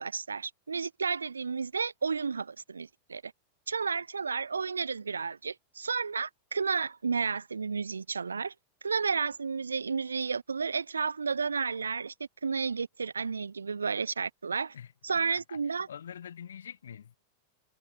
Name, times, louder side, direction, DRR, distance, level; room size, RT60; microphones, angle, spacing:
voice 1, 0.0-3.3 3.7-8.5 8.8-12.1 12.4-14.7 15.0-15.9, right 5 dB, 75° right, 0.5 m, -32 dB
voice 2, 14.7-17.2, left 8 dB, 65° left, 1.0 m, -46 dB
figure-of-eight pair, 90°, 0 cm